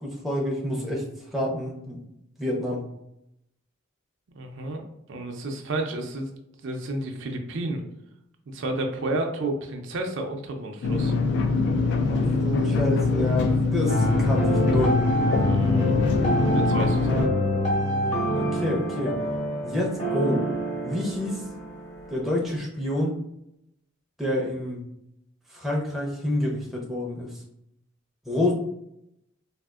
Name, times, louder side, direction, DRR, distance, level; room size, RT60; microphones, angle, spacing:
voice 1, 0.0-1.0 1.3-2.0 2.4-2.8 12.0-15.0 17.1-19.2 19.6-20.5 20.8-21.4 22.1-23.2 24.2-24.8 25.5-27.3 28.3-28.5, left 1 dB, ahead, -3 dB, 0.6 m, -28 dB
voice 2, 4.4-4.8 5.1-6.3 6.6-7.8 8.5-11.1 15.4-17.2, right 2 dB, 60° right, 3 dB, 0.4 m, -31 dB
sound 1, 10.8-17.3, left 3 dB, 55° left, 0.3 m, -23 dB
sound 2, 13.9-22.6, equal, 30° left, 0.9 m, -27 dB
3.5 x 2.4 x 2.4 m, 0.80 s
head